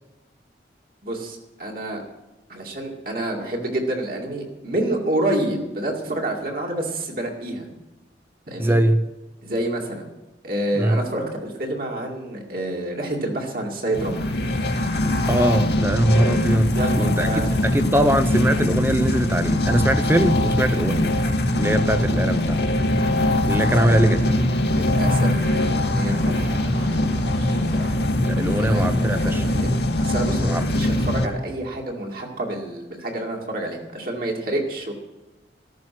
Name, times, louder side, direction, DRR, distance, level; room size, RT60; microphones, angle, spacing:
voice 1, 1.0-2.0 2.5-7.7 8.5-8.8 9.4-10.1 10.4-14.2 16.7-17.7 23.6-24.1 24.7-27.9 28.6-29.7 30.0-34.9, right 1 dB, 50° right, 0 dB, 2.4 m, -28 dB
voice 2, 8.6-9.0 10.7-11.0 15.3-16.7 17.0-17.3 17.6-21.1 21.6-22.6 23.4-24.2 28.2-29.4 30.4-30.6, right 1 dB, 10° right, 9 dB, 0.6 m, -21 dB
sound 1, 13.9-31.3, left 1 dB, 65° left, 1.4 m, -22 dB
14.0 x 13.5 x 6.1 m, 1.1 s
head